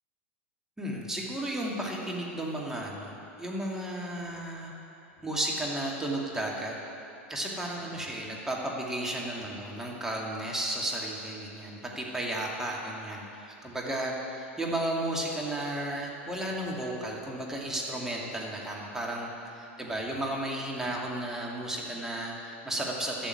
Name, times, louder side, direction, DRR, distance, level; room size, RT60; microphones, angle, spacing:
voice 1, 0.8-4.7 5.2-6.7 7.3-23.3, right 1 dB, 5° right, -2 dB, 2.6 m, -33 dB
13.0 x 6.9 x 9.9 m, 2.8 s
hypercardioid pair, 105°, 7 cm